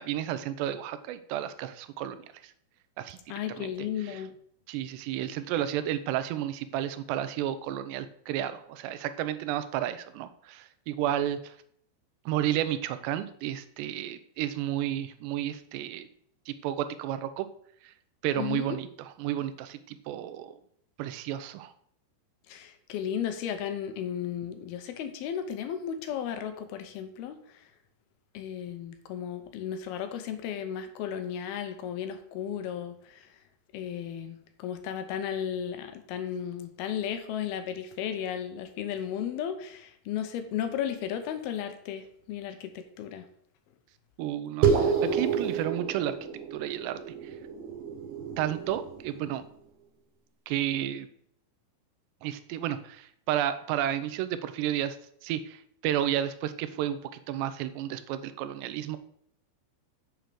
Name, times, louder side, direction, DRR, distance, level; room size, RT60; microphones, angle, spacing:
voice 1, 0.0-2.5 3.0-3.2 3.6-3.7 4.1-4.2 4.7-11.6 12.3-16.1 16.5-17.5 17.8-17.9 18.2-20.6 21.0-21.7 44.2-46.2 46.5-47.3 48.4-49.4 50.5-51.1 52.2-55.0 55.2-57.0 57.3-59.0, right 11 dB, 85° right, 12 dB, 2.9 m, -32 dB
voice 2, 3.3-4.3 18.4-18.8 22.5-27.7 28.3-33.3 33.7-43.3, left 9 dB, 75° left, 8 dB, 2.8 m, -34 dB
sound 1, 44.6-49.4, right 6 dB, 60° right, 2.7 m, -29 dB
7.6 x 6.3 x 6.9 m, 0.66 s
omnidirectional pair, 4.8 m